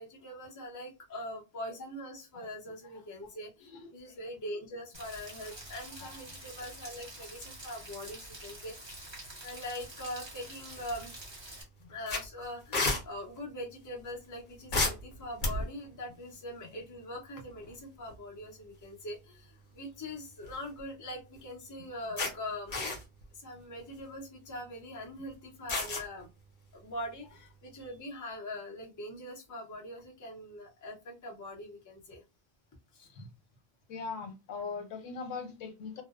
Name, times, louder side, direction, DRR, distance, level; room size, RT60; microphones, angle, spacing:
voice 1, 0.0-11.1 11.9-22.9 23.3-26.3 26.7-32.2 32.9-33.1, left 1 dB, 25° left, 0.4 m, -42 dB
voice 2, 2.9-3.3 3.6-4.2 6.0-6.1 11.8-11.9 16.6-16.7 33.0-33.3 33.9-36.0, left 5 dB, 85° left, 1.0 m, -42 dB
Rain, 4.9-11.6, right 1 dB, 25° right, 0.8 m, -47 dB
sound 1, 10.8-11.2 11.6-11.7 12.1-13.0 14.7-15.8 17.5-17.7 18.1-18.2 20.2-20.8 21.4-21.5 22.2-22.3 22.7-23.2 23.8-24.0 25.7-26.0, left 2 dB, 45° left, 0.8 m, -31 dB
2.6 x 2.0 x 2.3 m
omnidirectional pair, 1.3 m